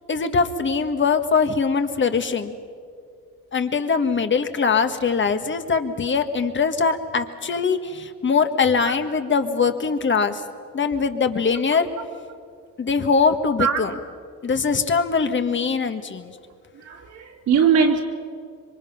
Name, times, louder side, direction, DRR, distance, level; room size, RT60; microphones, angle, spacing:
voice 1, 0.1-2.6 3.5-10.4 10.7-11.9 12.8-13.9 14.4-16.3, left 5 dB, 40° left, 8 dB, 1.6 m, -22 dB
voice 2, 16.7-18.0, right 6 dB, 80° right, -3 dB, 3.1 m, -20 dB
26.0 x 24.0 x 5.9 m, 2.2 s
cardioid pair, 90°, 30 cm